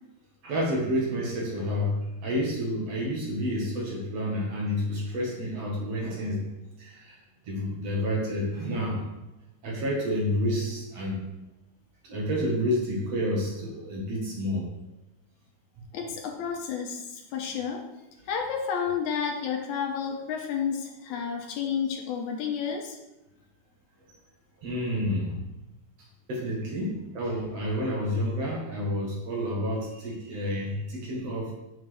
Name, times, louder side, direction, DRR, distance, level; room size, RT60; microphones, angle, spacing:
voice 1, 0.4-6.5 6.8-7.2 7.4-9.0 9.6-11.2 12.0-14.7 24.1-24.2 24.6-25.3 26.3-31.5, equal, 55° right, -3 dB, 2.6 m, -29 dB
voice 2, 15.9-17.9 18.3-23.0, left 7 dB, 75° left, 2 dB, 2.1 m, -31 dB
8.4 x 6.3 x 3.4 m, 0.97 s
omnidirectional pair, 3.6 m